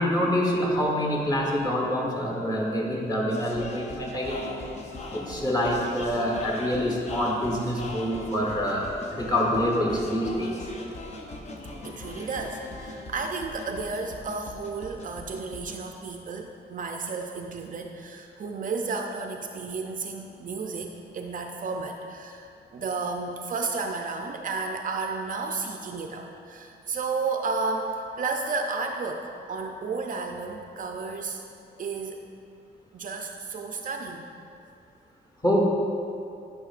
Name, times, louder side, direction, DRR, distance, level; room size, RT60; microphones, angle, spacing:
voice 1, 0.0-4.6 5.1-10.7 35.4-35.6, equal, 20° left, -2 dB, 1.2 m, -26 dB
sound 1, 3.3-15.8, left 2 dB, 40° left, 0.7 m, -40 dB
voice 2, 11.8-31.4 31.8-32.2 32.9-34.3, right 4 dB, 50° right, 3 dB, 0.4 m, -32 dB
9.9 x 5.4 x 2.4 m, 2.5 s
cardioid pair, 120°, 18 cm